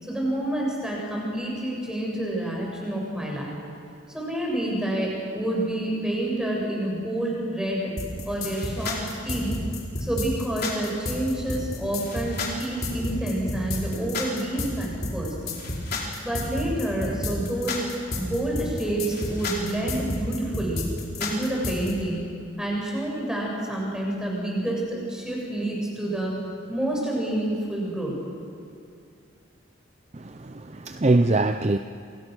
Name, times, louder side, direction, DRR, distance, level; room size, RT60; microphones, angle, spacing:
voice 1, 0.0-3.6 4.1-7.9 8.3-9.0 9.2-9.6 10.0-15.3 16.2-20.8 21.2-22.2 22.6-26.3 26.7-28.2, right 1 dB, 5° right, -3 dB, 7.0 m, -28 dB
sound 1, 8.0-21.9, left 2 dB, 50° left, 4.9 m, -31 dB
voice 2, 30.1-31.8, right 2 dB, 30° right, 8 dB, 0.6 m, -23 dB
30.0 x 27.5 x 6.4 m, 2.5 s
head